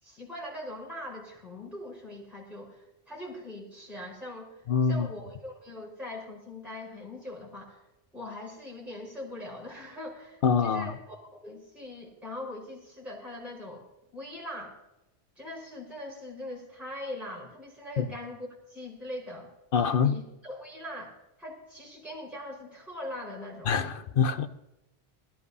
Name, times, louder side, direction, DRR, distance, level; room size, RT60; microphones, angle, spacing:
voice 1, 0.0-7.9 8.1-13.9 14.1-14.8 15.4-19.5 20.0-21.1 21.4-23.8, left 1 dB, ahead, 4.5 m, -41 dB
voice 2, 4.7-5.1 10.4-10.9 18.0-18.1 19.7-20.2 23.7-24.5, left 6 dB, 60° left, 0.9 m, -25 dB
22.0 x 13.0 x 2.7 m
omnidirectional pair, 1.1 m